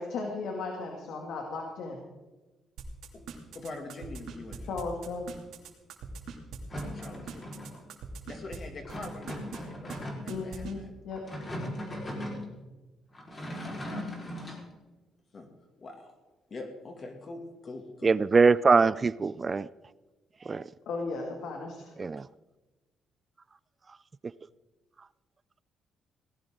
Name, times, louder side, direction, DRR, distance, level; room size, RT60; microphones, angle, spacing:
voice 1, 0.0-2.0 4.6-5.3 10.3-11.2 20.9-22.0, left 3 dB, 80° left, 2.4 m, -36 dB
sound 1, 2.8-8.6 8.9-9.6 9.9-10.0 10.3-10.7, right 6 dB, 80° right, 2.8 m, -41 dB
voice 2, 3.5-4.6 6.9-7.5 8.3-10.9 13.8-14.6 15.3-15.5 15.8-16.1 16.5-18.2, left 2 dB, 45° left, 2.4 m, -44 dB
sound 2, 6.7-7.8 8.9-10.4 11.1-12.4 13.1-14.6, equal, 30° left, 4.7 m, -38 dB
voice 3, 18.0-19.7 20.5-20.6 22.0-22.2, right 4 dB, 35° right, 0.4 m, -22 dB
18.5 x 17.0 x 3.8 m
cardioid pair, 90°, 0 cm